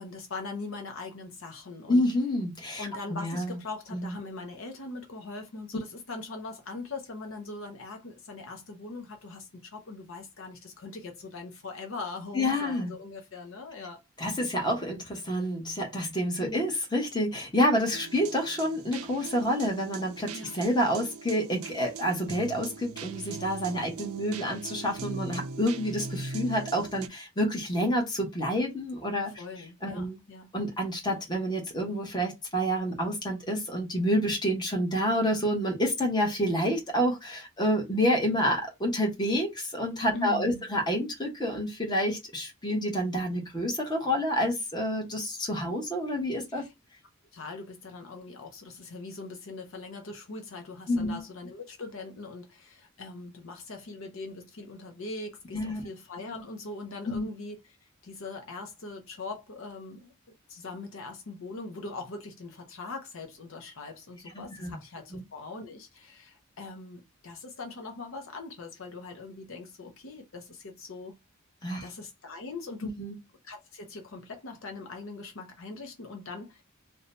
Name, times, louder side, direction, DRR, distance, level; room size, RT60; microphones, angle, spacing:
voice 1, 0.0-2.1 2.8-14.0 16.4-16.7 20.3-20.5 29.3-30.5 40.1-40.6 46.5-46.7 47.3-60.1 60.5-71.1 71.8-73.0 73.4-76.6, left 3 dB, 60° left, 0.6 m, -41 dB
voice 2, 1.9-3.6 3.9-4.1 12.3-12.9 14.2-29.3 29.8-30.2 30.5-46.6 50.9-51.2 55.5-55.8 57.1-57.3 64.4-64.8 65.1-65.2 71.6-71.9 73.0-73.1, equal, 20° left, 0.9 m, -28 dB
sound 1, 17.9-27.1, right 4 dB, 80° right, 0.4 m, -41 dB
2.7 x 2.2 x 3.9 m
head